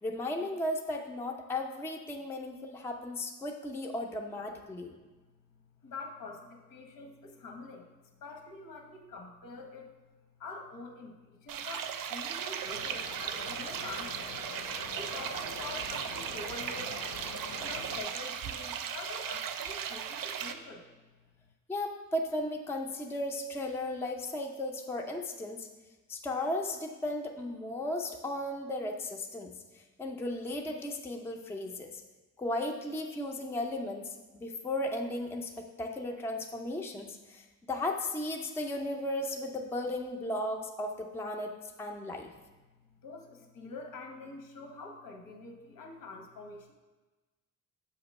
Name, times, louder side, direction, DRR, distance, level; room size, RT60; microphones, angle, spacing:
voice 1, 0.0-4.9 21.7-25.7 26.1-29.5 30.0-32.0 32.4-41.5 41.8-42.3, left 1 dB, 10° left, 2 dB, 0.3 m, -35 dB
voice 2, 5.8-7.9 8.2-9.9 10.4-14.4 14.9-17.1 17.5-20.9 43.0-46.7, left 3 dB, 80° left, 2 dB, 1.0 m, -45 dB
sound 1, 11.5-20.5, right 8 dB, 85° right, 0.5 m, -37 dB
sound 2, 12.7-18.0, left 5 dB, 60° left, 0.6 m, -45 dB
6.8 x 2.9 x 5.2 m, 1.2 s
wide cardioid pair, 165°, 33 cm